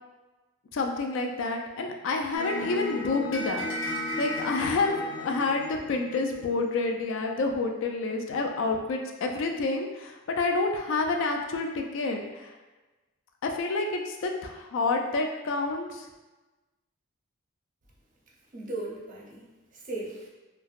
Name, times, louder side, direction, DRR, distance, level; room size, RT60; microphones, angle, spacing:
voice 1, 0.7-12.5 13.4-16.1, left 3 dB, 65° left, 3 dB, 0.3 m, -29 dB
sound 1, 2.3-6.7, left 1 dB, 80° left, 0.9 m, -34 dB
voice 2, 18.5-20.3, right 2 dB, 40° right, -3 dB, 0.5 m, -37 dB
3.2 x 2.0 x 2.3 m, 1.1 s
head